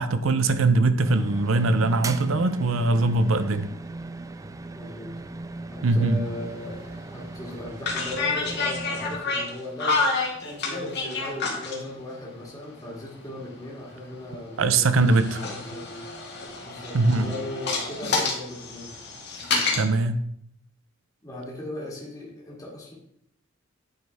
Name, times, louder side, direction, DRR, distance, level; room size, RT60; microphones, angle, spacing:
voice 1, 0.0-3.7 5.8-6.2 14.6-15.4 16.9-17.3 19.7-20.2, right 3 dB, 80° right, 11 dB, 0.6 m, -21 dB
sound 1, 1.0-9.2, right 2 dB, 15° right, 0.3 m, -38 dB
voice 2, 4.7-5.1 5.7-10.1 10.7-18.9 21.2-22.9, left 1 dB, 20° left, -4 dB, 1.8 m, -38 dB
sound 2, 6.3-6.4 6.8-7.0 7.8-11.8 12.9-14.6 15.0-19.8, left 3 dB, 55° left, 1.6 m, -29 dB
9.6 x 5.2 x 3.4 m, 0.70 s
head